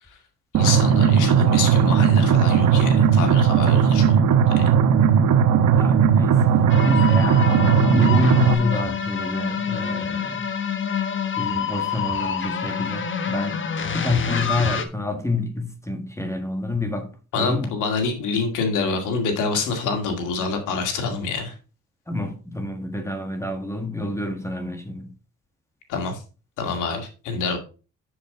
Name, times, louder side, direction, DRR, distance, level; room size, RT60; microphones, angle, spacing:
voice 1, 0.5-4.2 4.6-4.7 17.3-21.5 25.9-26.2 26.6-27.6, left 4 dB, 90° left, 2.2 m, -26 dB
sound 1, 0.5-8.5, right 7 dB, 75° right, 1.1 m, -17 dB
voice 2, 5.5-10.5 11.4-13.6 13.9-17.1 17.3-17.7 22.1-25.1, left 2 dB, 10° left, 1.6 m, -28 dB
sound 2, 6.7-14.9, left 7 dB, 40° left, 1.3 m, -27 dB
7.7 x 6.8 x 3.7 m
cardioid pair, 90°, 30 cm